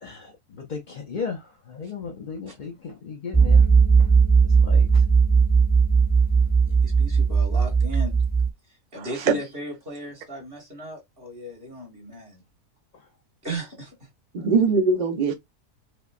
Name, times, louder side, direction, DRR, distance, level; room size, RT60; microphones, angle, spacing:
voice 1, 0.0-3.7 4.0-4.1 4.4-5.0 12.9-13.1, left 5 dB, 65° left, 0.4 m, -36 dB
sound 1, 3.3-8.5, right 5 dB, 5° right, 0.9 m, -18 dB
voice 2, 6.6-8.3 8.9-12.4 13.4-14.1, right 1 dB, 35° right, 1.9 m, -36 dB
voice 3, 9.0-9.4 14.3-15.3, right 4 dB, 75° right, 0.4 m, -22 dB
5.3 x 2.1 x 2.4 m
omnidirectional pair, 1.7 m